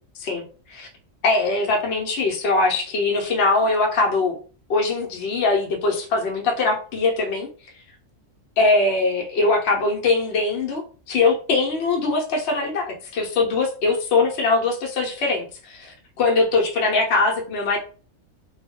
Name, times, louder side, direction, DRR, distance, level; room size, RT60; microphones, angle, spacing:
voice 1, 1.2-4.4 4.7-7.5 8.6-10.8 11.1-17.8, left 3 dB, 60° left, 0 dB, 0.8 m, -21 dB
2.2 x 2.1 x 3.4 m, 0.38 s
omnidirectional pair, 1.4 m